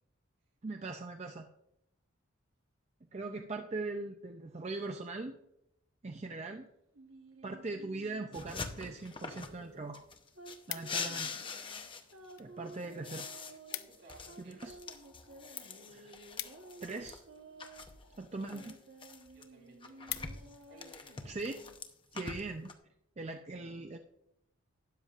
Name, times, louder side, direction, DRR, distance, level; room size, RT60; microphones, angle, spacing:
voice 1, 0.6-1.5 3.1-5.4 6.0-6.7 7.4-10.1 10.7-11.4 12.4-13.3 14.4-14.8 15.9-16.1 16.8-17.2 18.2-18.8 21.2-21.6 22.1-22.7 23.2-24.0, right 3 dB, 30° right, 5 dB, 0.5 m, -40 dB
sound 1, 6.9-21.8, right 2 dB, 85° right, 1.2 m, -55 dB
sound 2, 8.3-9.6 9.9-12.3 12.7-17.2 17.6-19.4 19.8-22.7, left 5 dB, 25° left, 0.7 m, -44 dB
sound 3, 10.3-11.3 12.0-12.5 12.8-12.9 13.2-13.3 13.5-14.1 14.5-17.3 18.1-18.4 18.9-19.0 19.3-19.4 19.7-20.7 21.2-21.4, left 14 dB, 80° left, 0.6 m, -45 dB
voice 2, 13.7-14.8 19.3-21.4 22.1-22.3, right 2 dB, 70° right, -1 dB, 3.4 m, -59 dB
12.5 x 9.6 x 2.4 m, 0.81 s
head